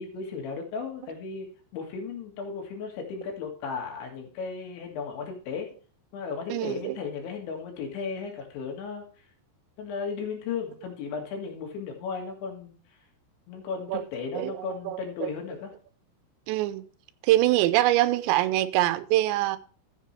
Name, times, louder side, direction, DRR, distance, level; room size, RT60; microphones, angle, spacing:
voice 1, 0.0-1.5 1.7-5.7 6.1-9.3 9.8-12.8 13.5-15.7, left 5 dB, 85° left, 4.3 m, -35 dB
voice 2, 6.5-7.0 13.9-14.0 14.3-14.6 14.9-15.3 16.5-16.8 17.2-19.6, right 15 dB, 85° right, 2.9 m, -24 dB
14.5 x 7.5 x 3.2 m
omnidirectional pair, 5.1 m